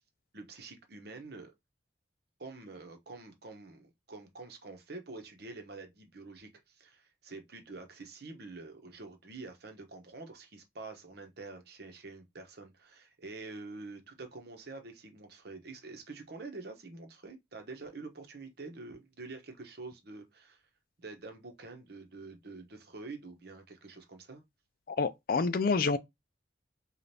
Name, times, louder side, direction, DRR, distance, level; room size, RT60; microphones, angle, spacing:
voice 1, 0.3-1.5 2.4-20.6 21.0-24.4, right 3 dB, 60° right, 1.0 m, -47 dB
voice 2, 24.9-26.0, left 4 dB, 55° left, 0.4 m, -28 dB
4.9 x 2.5 x 2.7 m
head